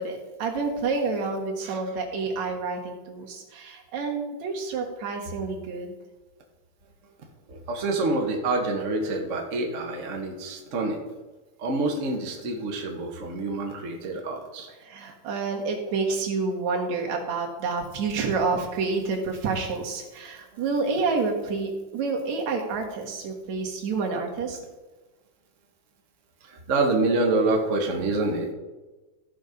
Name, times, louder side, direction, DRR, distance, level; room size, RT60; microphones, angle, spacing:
voice 1, 0.0-5.9 14.8-24.6, right 4 dB, 70° right, 1 dB, 2.8 m, -29 dB
voice 2, 7.5-11.0 11.6-14.7 26.5-28.5, right 2 dB, 35° right, 1 dB, 1.2 m, -27 dB
14.5 x 5.7 x 5.1 m, 1.2 s
omnidirectional pair, 3.4 m